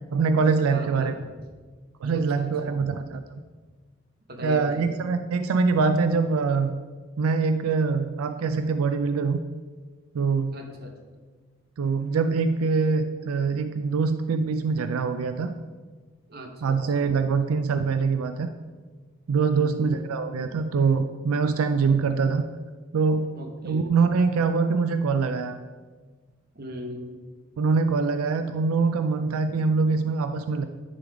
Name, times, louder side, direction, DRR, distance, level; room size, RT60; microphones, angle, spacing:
voice 1, 0.1-1.1 2.0-3.2 4.4-6.7 7.2-9.4 10.1-10.5 11.8-15.5 16.6-18.5 19.3-22.4 22.9-23.3 23.6-25.6 27.6-30.6, right 4 dB, 90° right, 9 dB, 0.4 m, -24 dB
voice 2, 0.7-1.2 2.1-2.8 4.3-5.1 10.5-10.9 16.3-17.2 19.5-20.0 23.4-23.9 26.5-27.2, equal, 45° right, 3 dB, 1.0 m, -39 dB
10.0 x 3.9 x 4.8 m, 1.4 s
head